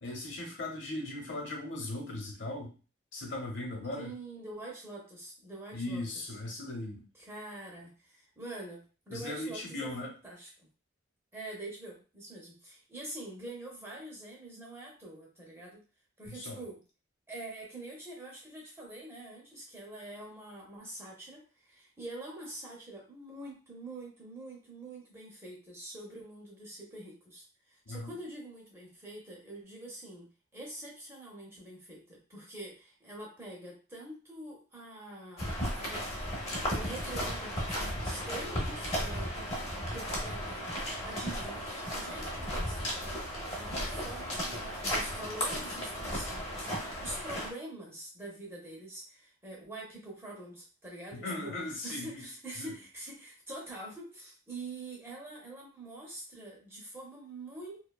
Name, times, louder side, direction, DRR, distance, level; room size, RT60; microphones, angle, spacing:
voice 1, 0.0-2.7 3.1-4.1 5.7-7.0 9.1-10.1 16.3-16.6 27.9-28.2 51.1-52.1 52.6-52.7, left 2 dB, 65° left, 0 dB, 0.9 m, -38 dB
voice 2, 3.9-6.4 7.1-10.7 11.3-15.8 16.2-16.8 17.3-43.2 43.5-51.5 51.8-57.8, right 2 dB, 15° right, -3 dB, 0.7 m, -45 dB
sound 1, 35.4-47.5, equal, 30° left, 0.8 m, -35 dB
2.7 x 2.3 x 2.3 m, 0.35 s
head